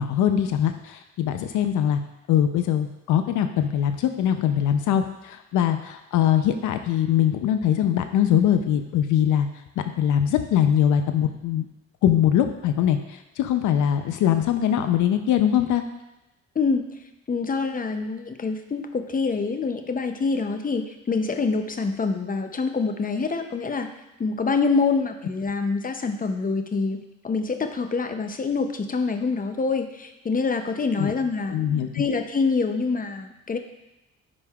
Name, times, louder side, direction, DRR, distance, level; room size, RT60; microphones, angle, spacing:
voice 1, 0.0-2.0 2.3-9.5 10.0-11.7 12.0-15.8 31.0-31.1 31.5-31.9, left 10 dB, 80° left, 8 dB, 0.6 m, -22 dB
voice 2, 17.3-23.9 24.2-27.0 27.2-31.6 31.9-33.6, left 4 dB, 30° left, 7 dB, 0.6 m, -25 dB
9.7 x 5.3 x 2.3 m, 0.93 s
cardioid pair, 90°, 30 cm